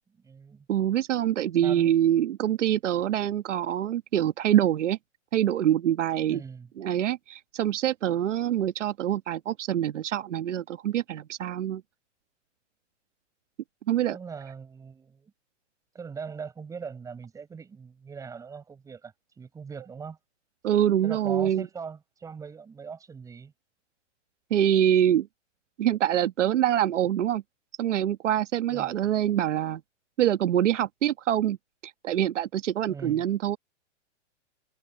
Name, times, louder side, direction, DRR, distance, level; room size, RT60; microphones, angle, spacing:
voice 1, 0.2-0.7 1.6-1.9 6.3-6.7 14.1-15.3 15.9-20.2 21.0-23.5 28.7-29.1 32.9-33.2, right 6 dB, 10° right, 6.9 m, -41 dB
voice 2, 0.7-5.0 5.3-6.4 6.8-11.8 13.9-14.2 20.6-21.7 24.5-25.3 25.8-27.4 27.8-29.8 30.2-31.6 32.0-33.6, right 11 dB, 80° right, 1.4 m, -25 dB
hypercardioid pair, 170°, 36 cm